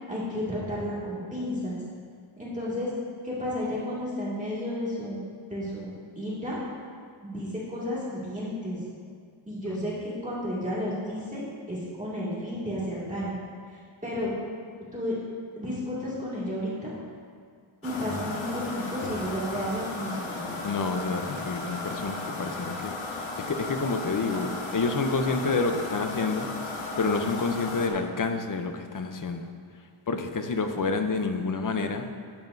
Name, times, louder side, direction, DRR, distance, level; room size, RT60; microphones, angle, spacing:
voice 1, 0.1-1.8 2.4-2.9 3.2-5.2 5.5-6.6 7.2-8.8 9.5-13.4 13.7-14.3 14.9-15.2 15.6-16.9 17.8-20.5, equal, 15° right, -8 dB, 2.1 m, -32 dB
sound 1, 17.8-27.9, left 2 dB, 65° left, 1.3 m, -35 dB
voice 2, 20.6-26.5 27.0-29.5 30.1-32.0, left 4 dB, 40° left, 6 dB, 0.6 m, -29 dB
13.0 x 9.3 x 2.6 m, 2.2 s
wide cardioid pair, 140°, 49 cm